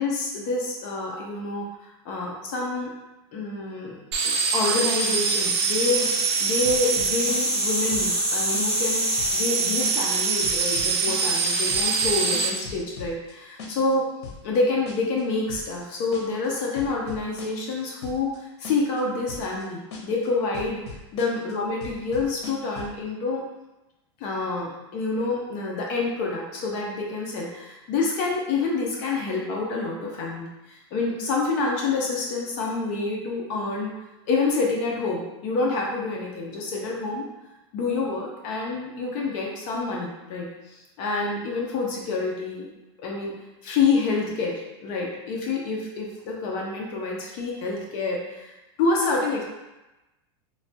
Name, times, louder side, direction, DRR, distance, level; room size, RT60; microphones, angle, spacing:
voice 1, 0.0-1.6 2.1-2.9 3.3-9.1 9.3-14.1 14.4-20.8 21.1-23.4 24.2-33.9 34.3-37.3 37.7-42.7 43.0-43.3 43.6-48.5 48.8-49.4, left 3 dB, 40° left, -1 dB, 0.5 m, -27 dB
sound 1, 4.1-12.5, right 3 dB, 70° right, 0.5 m, -24 dB
sound 2, 6.0-6.4 6.6-7.6 7.9-8.3 8.5-8.9 9.2-9.5 9.8-10.2 10.4-11.4 11.7-13.3 13.6-13.9 14.2-14.6 14.9-15.2 15.5-15.8 16.1-16.5 16.8-17.7 18.0-18.4 18.6-19.0 19.3-19.6 19.9-20.3 20.5-21.5 21.8-23.0, left 4 dB, 85° left, 0.7 m, -39 dB
3.1 x 2.2 x 2.7 m, 1.0 s
supercardioid pair, 165°, 14 cm